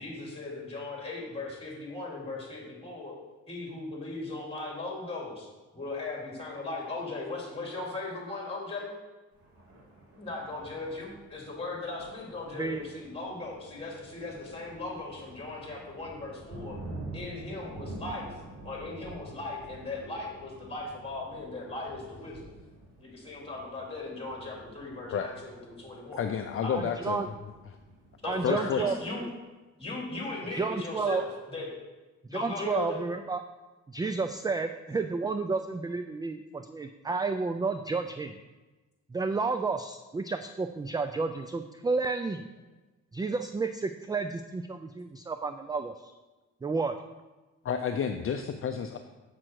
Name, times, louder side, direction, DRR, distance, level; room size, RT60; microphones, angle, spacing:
voice 1, 0.0-3.2 3.5-5.5 5.7-8.9 10.2-16.8 17.1-18.3 18.6-22.4 23.0-26.2 26.6-26.7 28.2-29.3 29.8-31.7 32.3-33.0, left 3 dB, 20° left, -2 dB, 3.0 m, -38 dB
Thunder, 9.3-29.1, right 2 dB, 50° right, 2.9 m, -48 dB
voice 2, 26.2-27.3 28.4-28.9 47.6-49.0, left 7 dB, 45° left, 6 dB, 0.6 m, -30 dB
voice 3, 26.7-27.3 28.2-28.9 30.6-31.2 32.3-33.4 33.9-38.4 39.1-42.4 43.1-46.1 46.6-47.0, right 4 dB, 15° right, 8 dB, 0.3 m, -31 dB
7.6 x 6.1 x 4.6 m, 1.2 s
cardioid pair, 90°, 30 cm